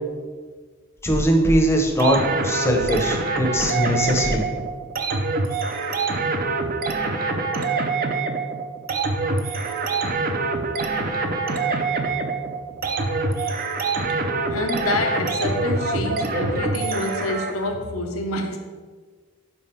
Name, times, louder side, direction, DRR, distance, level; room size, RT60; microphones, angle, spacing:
voice 1, 1.0-4.5, equal, 10° left, 2 dB, 0.7 m, -20 dB
sound 1, 2.0-17.7, right 3 dB, 40° right, 0.5 m, -25 dB
voice 2, 14.5-18.6, left 2 dB, 70° left, 3 dB, 0.6 m, -27 dB
5.4 x 4.7 x 4.3 m, 1.5 s
head